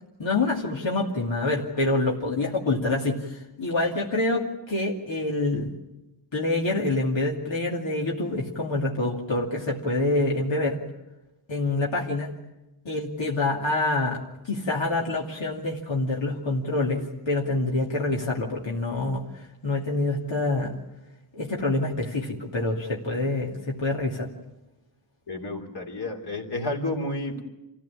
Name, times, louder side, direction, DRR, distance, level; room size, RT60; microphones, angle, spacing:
voice 1, 0.2-5.7 6.3-10.8 11.5-12.4 12.8-14.2 14.5-20.8 21.3-24.3, left 2 dB, 85° left, -2 dB, 2.7 m, -26 dB
voice 2, 25.3-27.4, left 2 dB, 60° left, 1 dB, 3.3 m, -31 dB
27.0 x 15.5 x 8.9 m, 0.99 s
wide cardioid pair, 100°, 44 cm